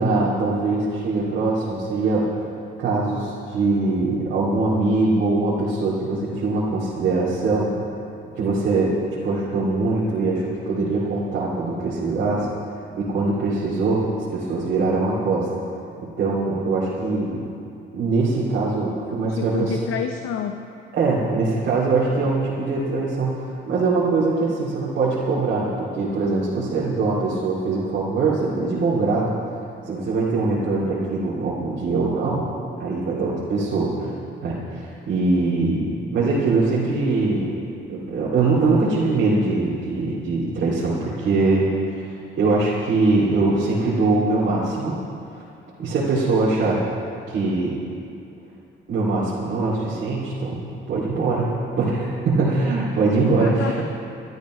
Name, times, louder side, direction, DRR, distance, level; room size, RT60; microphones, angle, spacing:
voice 1, 0.0-2.3 2.8-7.7 8.3-12.5 12.9-15.5 16.2-17.5 17.9-19.8 20.9-29.3 29.9-32.5 32.8-34.1 34.4-37.5 37.9-41.7 41.9-45.0 45.8-46.8 47.3-47.8 48.9-51.5 51.8-53.8, right 3 dB, 55° right, -8 dB, 2.7 m, -22 dB
voice 2, 19.4-20.5 53.4-53.8, left 8 dB, 80° left, 4 dB, 0.8 m, -28 dB
27.0 x 12.5 x 3.2 m, 2.6 s
cardioid pair, 165°, 21 cm